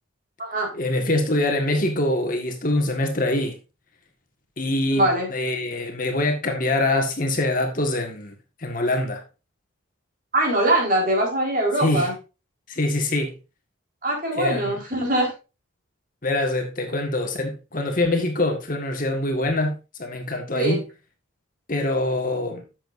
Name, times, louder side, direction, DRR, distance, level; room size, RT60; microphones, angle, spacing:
voice 1, 0.7-3.6 4.6-8.3 8.6-9.2 11.8-12.1 12.7-13.4 14.3-14.8 16.2-20.8 21.7-22.6, left 2 dB, 40° left, 1.8 m, -24 dB
voice 2, 4.9-5.3 10.3-12.1 14.0-15.3 20.5-20.8, right 1 dB, 45° right, 4.6 m, -22 dB
11.5 x 7.8 x 2.7 m
head